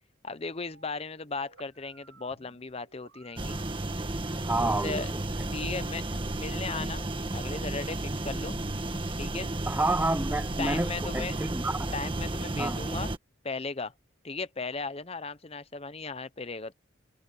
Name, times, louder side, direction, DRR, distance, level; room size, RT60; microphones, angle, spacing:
voice 1, 0.2-3.6 4.6-5.1 5.5-6.0 6.4-8.6 9.2-9.5 10.6-11.4 11.9-13.1 13.4-13.9 14.2-16.7, left 4 dB, 30° left, 0.8 m, -36 dB
sound 1, 0.7-5.7, right 4 dB, 80° right, 5.4 m, -58 dB
sound 2, 3.4-13.2, right 2 dB, 25° right, 1.4 m, -33 dB
voice 2, 4.3-5.0 9.7-11.9 12.6-12.8, right 2 dB, 10° right, 0.5 m, -29 dB
head